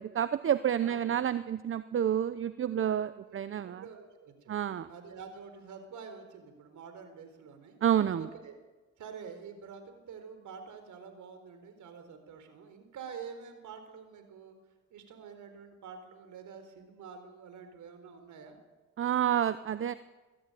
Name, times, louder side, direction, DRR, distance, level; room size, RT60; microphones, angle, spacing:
voice 1, 0.0-3.8 4.5-4.9 7.8-8.3 19.0-19.9, right 9 dB, 45° right, 14 dB, 0.8 m, -29 dB
voice 2, 0.8-1.3 3.2-3.3 3.7-4.5 4.8-7.8 8.1-8.5 9.0-14.5 14.9-18.6, right 6 dB, 75° right, 8 dB, 4.3 m, -47 dB
22.0 x 14.0 x 9.2 m, 1.2 s
cardioid pair, 90°, 30 cm